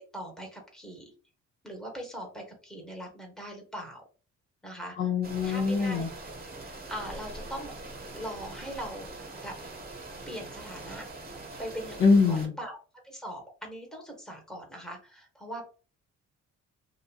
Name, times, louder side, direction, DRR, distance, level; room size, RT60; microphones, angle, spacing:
voice 1, 0.1-1.1 1.6-4.0 4.6-5.1 5.4-6.1 6.9-7.8 8.1-9.5 10.3-11.0 11.6-12.8 13.0-15.6, equal, ahead, 1 dB, 1.1 m, -40 dB
voice 2, 5.0-6.1 12.0-12.5, left 4 dB, 40° left, 0 dB, 0.6 m, -23 dB
sound 1, 5.2-12.5, right 2 dB, 30° right, 1.0 m, -43 dB
2.9 x 2.5 x 2.3 m, 0.36 s
cardioid pair, 90°, 30 cm